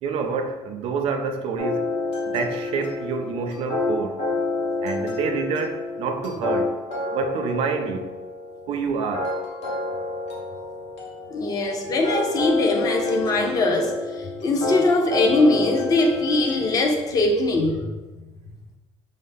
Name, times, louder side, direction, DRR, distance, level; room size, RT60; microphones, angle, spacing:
voice 1, 0.0-1.9 2.3-4.2 4.8-6.7 7.1-8.1 8.7-9.3, right 5 dB, 55° right, 5 dB, 0.4 m, -27 dB
sound 1, 1.6-16.9, left 3 dB, 65° left, 1.2 m, -29 dB
voice 2, 11.3-17.9, left 2 dB, 30° left, 2 dB, 0.5 m, -21 dB
5.2 x 2.0 x 3.4 m, 1.1 s
cardioid pair, 175°, 12 cm